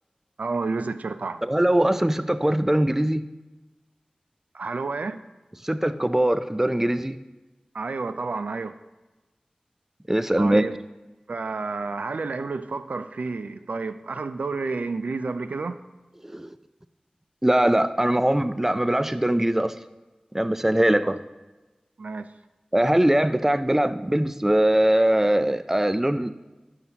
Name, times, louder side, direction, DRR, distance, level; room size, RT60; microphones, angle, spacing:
voice 1, 0.4-1.4 4.5-5.2 7.7-8.8 10.4-10.7 11.3-15.8 21.0-21.1 22.0-22.3, right 3 dB, 90° right, 11 dB, 0.3 m, -30 dB
voice 2, 1.4-3.2 5.6-7.2 10.1-10.7 16.2-16.5 17.4-19.7 20.3-21.2 22.7-26.3, right 1 dB, 15° right, 12 dB, 0.4 m, -21 dB
11.0 x 5.7 x 2.8 m, 1.1 s
wide cardioid pair, 55°, 2 cm